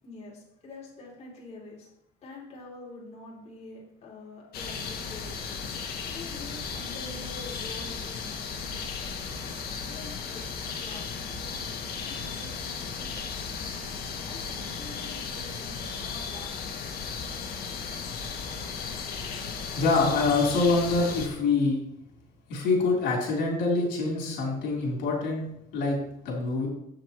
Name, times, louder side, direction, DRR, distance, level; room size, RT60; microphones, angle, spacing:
voice 1, 0.0-1.9 2.2-9.3 9.8-10.5 10.8-11.1 11.3-13.7 14.2-16.6, left 2 dB, 40° left, -4 dB, 3.3 m, -46 dB
sound 1, 4.5-21.3, left 5 dB, 60° left, 1.8 m, -35 dB
voice 2, 19.8-21.8 22.5-25.4 25.7-26.0 26.2-26.7, left 3 dB, 80° left, -2 dB, 3.6 m, -25 dB
13.0 x 8.1 x 3.1 m, 0.80 s
cardioid pair, 135°, 18 cm